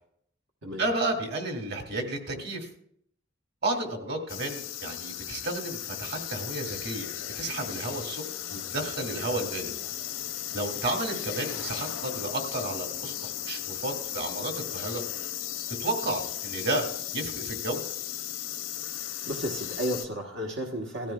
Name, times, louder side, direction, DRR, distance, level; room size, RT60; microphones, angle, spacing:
voice 1, 0.8-2.7 3.6-8.2 8.5-9.7 10.5-15.0 15.8-16.9 17.1-17.8, right 2 dB, 55° right, 3 dB, 2.1 m, -32 dB
sound 1, 4.3-20.1, left 12 dB, 85° left, 0.7 m, -36 dB
voice 2, 18.8-21.1, right 1 dB, 85° right, 1 dB, 1.2 m, -33 dB
17.5 x 14.0 x 2.3 m, 0.67 s
head